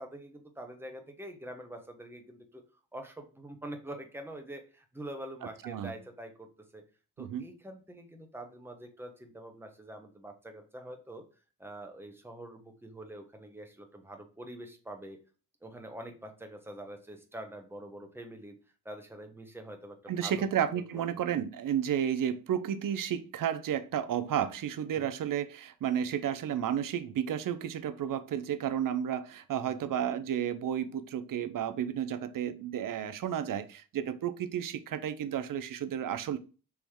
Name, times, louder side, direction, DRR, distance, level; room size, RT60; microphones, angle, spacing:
voice 1, 0.0-2.6 2.9-6.8 7.2-11.2 11.6-15.2 15.6-18.5 18.8-20.5 20.9-21.0 24.9-25.1 29.7-29.9, right 1 dB, 5° right, 1.0 m, -45 dB
voice 2, 20.1-36.4, right 9 dB, 55° right, 0.6 m, -32 dB
4.7 x 3.1 x 3.6 m
cardioid pair, 90°, 39 cm